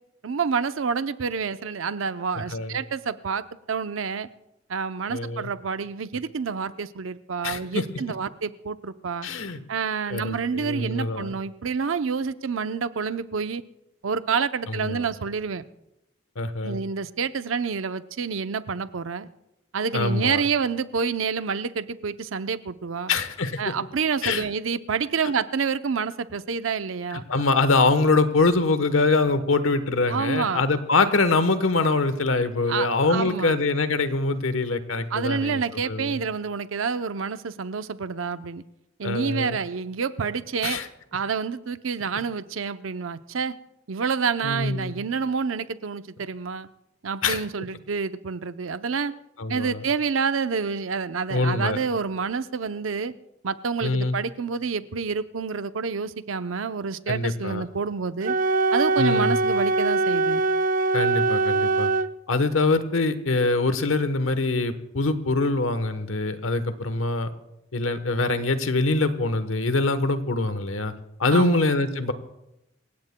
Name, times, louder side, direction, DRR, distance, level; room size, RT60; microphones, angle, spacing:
voice 1, 0.2-4.3 4.7-9.3 9.7-13.6 14.0-15.6 16.6-19.3 19.7-23.1 23.6-27.2 30.1-30.6 32.7-33.5 35.1-38.6 39.0-40.8 41.1-43.5 43.9-46.7 47.0-49.1 49.5-53.1 53.4-58.3 58.7-60.4 71.3-71.6, right 5 dB, 90° right, 12 dB, 0.6 m, -28 dB
voice 2, 5.1-5.5 7.4-7.8 9.2-9.6 10.1-11.3 14.7-15.0 16.4-16.8 19.9-20.4 23.1-23.7 24.2-24.5 27.1-36.2 39.0-39.6 40.6-40.9 44.4-44.9 47.2-47.4 49.4-49.8 51.3-51.8 53.8-54.2 57.1-57.6 59.0-59.4 60.9-61.9 62.3-67.3 67.7-70.9 71.2-72.1, left 3 dB, 90° left, 11 dB, 1.1 m, -24 dB
Wind instrument woodwind instrument, 58.2-62.1, right 3 dB, 45° right, 0.4 m, -22 dB
27.0 x 16.5 x 2.2 m, 0.88 s
head